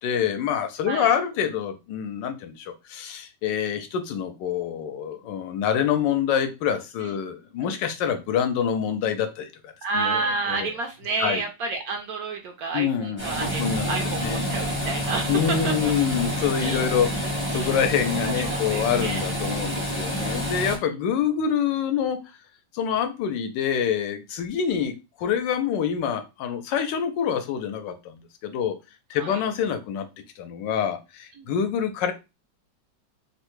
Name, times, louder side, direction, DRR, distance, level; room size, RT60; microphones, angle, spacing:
voice 1, 0.0-10.2 10.5-10.7 11.2-11.4 12.7-14.5 15.3-22.2 22.7-28.8 29.1-30.1 30.4-32.1, left 8 dB, 85° left, 8 dB, 1.3 m, -26 dB
voice 2, 9.8-15.9 16.6-16.8 17.1-17.2 17.5-17.7 18.2-19.3 20.2-20.6 29.1-29.4 31.4-31.5, right 4 dB, 70° right, 3 dB, 0.9 m, -30 dB
sound 1, 13.2-20.8, equal, 15° right, 0.5 m, -28 dB
3.5 x 2.1 x 3.0 m, 0.27 s
omnidirectional pair, 1.9 m